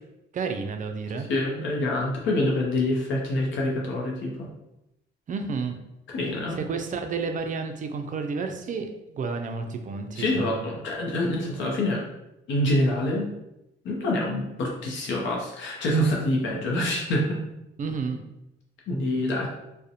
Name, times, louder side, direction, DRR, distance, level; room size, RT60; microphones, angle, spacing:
voice 1, 0.3-1.3 5.3-5.8 6.5-10.7 17.8-18.2, right 4 dB, 40° right, 6 dB, 0.4 m, -31 dB
voice 2, 1.1-4.5 6.1-6.6 10.2-12.0 12.5-13.3 13.8-17.4 18.9-19.5, left 1 dB, 70° left, -2 dB, 0.6 m, -26 dB
2.4 x 2.1 x 2.7 m, 0.87 s
cardioid pair, 90°, 20 cm